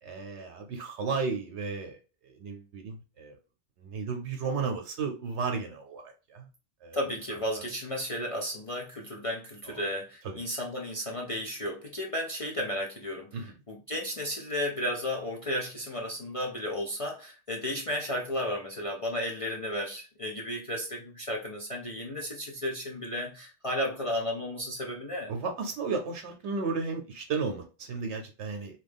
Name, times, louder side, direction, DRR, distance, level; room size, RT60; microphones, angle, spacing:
voice 1, 0.0-3.4 3.8-6.5 6.8-7.6 9.6-9.8 10.2-10.4 13.3-13.5 25.3-28.8, right 4 dB, 75° right, 0.9 m, -34 dB
voice 2, 6.9-13.4 13.7-25.3, equal, 50° left, 0.4 m, -33 dB
3.0 x 2.4 x 3.4 m
omnidirectional pair, 1.2 m